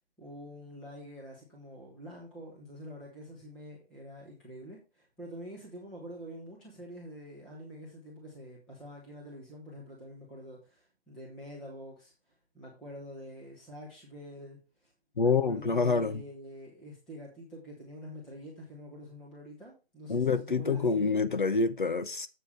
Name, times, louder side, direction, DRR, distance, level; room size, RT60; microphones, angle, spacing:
voice 1, 0.2-12.1 12.5-21.1, equal, ahead, 1.0 m, -46 dB
voice 2, 15.2-16.2 20.1-22.3, left 4 dB, 55° left, 0.7 m, -27 dB
7.9 x 7.6 x 3.3 m
figure-of-eight pair, 165°, 31 cm